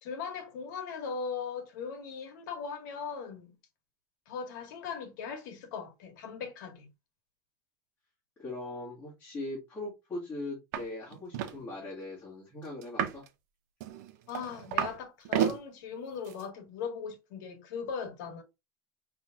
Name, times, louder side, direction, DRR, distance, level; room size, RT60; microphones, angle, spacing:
voice 1, 0.0-3.5 4.3-6.9 14.3-18.4, left 6 dB, 85° left, 1.6 m, -39 dB
voice 2, 8.4-13.2, left 2 dB, 15° left, 2.0 m, -40 dB
sound 1, 10.7-10.9 11.1-11.6 12.8-13.3 13.8-15.0 15.2-15.6 16.3-16.4, right 10 dB, 65° right, 0.7 m, -31 dB
5.4 x 3.4 x 2.7 m
cardioid pair, 175°, 10 cm